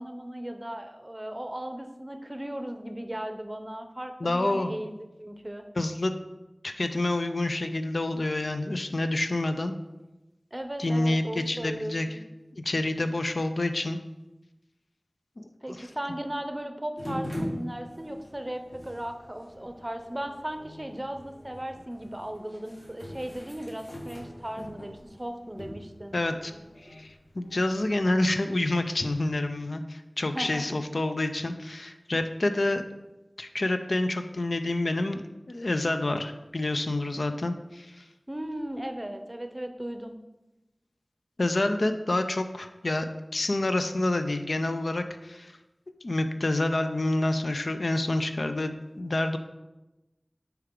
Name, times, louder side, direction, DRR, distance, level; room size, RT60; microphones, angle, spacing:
voice 1, 0.0-5.6 10.5-12.2 15.6-26.2 30.3-30.8 38.3-40.2, right 1 dB, 30° right, 7 dB, 0.6 m, -37 dB
voice 2, 4.2-4.7 5.8-6.1 6.6-9.7 10.8-12.2 12.5-14.0 15.4-15.9 26.1-26.5 26.8-32.8 33.4-35.2 35.5-38.0 41.4-43.1 43.3-45.5 46.0-49.4, left 2 dB, 85° left, 8 dB, 0.4 m, -28 dB
sound 1, 17.0-28.3, equal, 55° left, 1.9 m, -42 dB
6.6 x 4.6 x 3.7 m, 1.0 s
wide cardioid pair, 45°, 0 cm